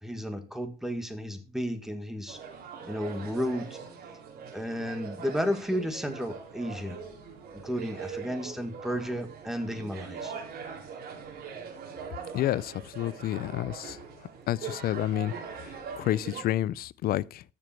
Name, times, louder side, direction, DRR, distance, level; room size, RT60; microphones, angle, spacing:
voice 1, 0.0-2.4 2.8-3.8 4.5-7.0 7.6-10.3, equal, ahead, 2.1 m, -33 dB
sound 1, 2.3-16.4, right 6 dB, 70° right, 4.2 m, -42 dB
voice 2, 12.3-14.0 14.5-17.4, left 13 dB, 65° left, 0.5 m, -30 dB
14.0 x 7.0 x 4.6 m
cardioid pair, 110°, 17 cm